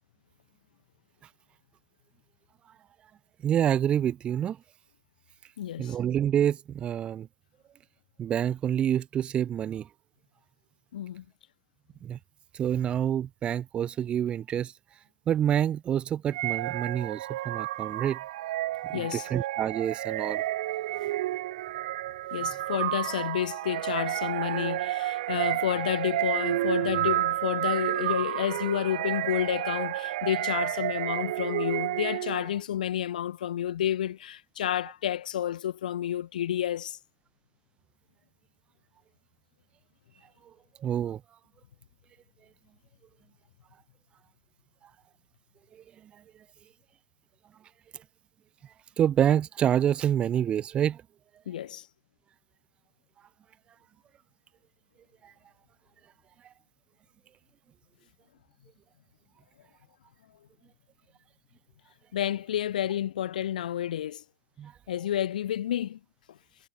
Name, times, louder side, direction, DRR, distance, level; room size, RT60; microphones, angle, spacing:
voice 1, 3.4-4.6 5.8-7.3 8.2-9.9 12.0-12.2 12.5-14.7 15.3-18.2 18.9-20.4 40.8-41.2 49.0-51.0 55.2-55.3 64.6-64.7, right 10 dB, 20° right, 1.8 m, -27 dB
voice 2, 5.6-6.0 10.9-11.2 18.9-19.3 22.3-37.0 51.5-51.9 62.1-64.2 64.9-66.0, left 11 dB, 60° left, 4.1 m, -30 dB
sound 1, 16.3-32.5, right 15 dB, 50° right, 4.2 m, -31 dB
figure-of-eight pair, 120°, 5 cm